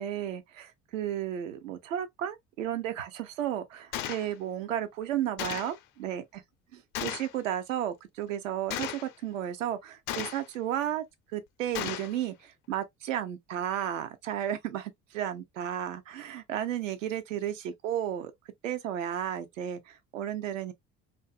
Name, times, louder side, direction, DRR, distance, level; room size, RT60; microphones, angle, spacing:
voice 1, 0.0-6.4 7.0-11.0 11.3-18.3 18.6-20.7, right 10 dB, 75° right, 0.6 m, -33 dB
Gunshot gunfire, 3.9-4.3 5.4-5.8 6.9-7.3 8.7-9.1 10.1-10.5 11.7-12.1, left 11 dB, 55° left, 0.5 m, -35 dB
2.5 x 2.5 x 2.3 m
figure-of-eight pair, 55°, 39 cm